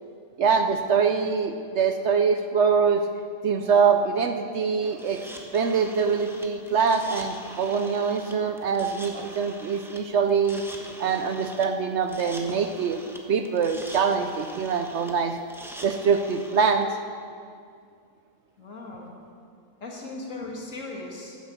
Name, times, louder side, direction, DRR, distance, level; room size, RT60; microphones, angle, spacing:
voice 1, 0.4-3.0 3.4-5.2 5.5-10.6 11.0-15.4 15.8-16.9, right 6 dB, 65° right, 7 dB, 0.8 m, -24 dB
sound 1, 4.9-16.8, equal, ahead, 0.8 m, -43 dB
voice 2, 18.6-19.1 19.8-21.4, left 2 dB, 65° left, -1 dB, 2.2 m, -37 dB
10.5 x 9.5 x 6.6 m, 2.3 s
omnidirectional pair, 1.5 m